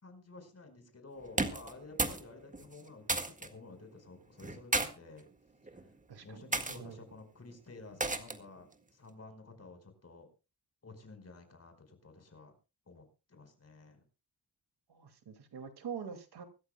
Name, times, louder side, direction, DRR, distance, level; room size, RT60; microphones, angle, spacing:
voice 1, 0.0-5.3 5.7-5.9 6.2-10.3 10.8-12.5 12.9-14.0, left 3 dB, 40° left, 7 dB, 4.8 m, -52 dB
sound 1, 1.3-2.3 2.5-3.5 4.4-4.9 5.7-5.9 6.5-6.8 8.0-8.5, right 2 dB, 20° right, 1.8 m, -33 dB
voice 2, 6.1-7.1 14.9-16.5, right 7 dB, 75° right, 8 dB, 2.4 m, -45 dB
25.0 x 13.5 x 2.2 m, 0.31 s
wide cardioid pair, 105°, 39 cm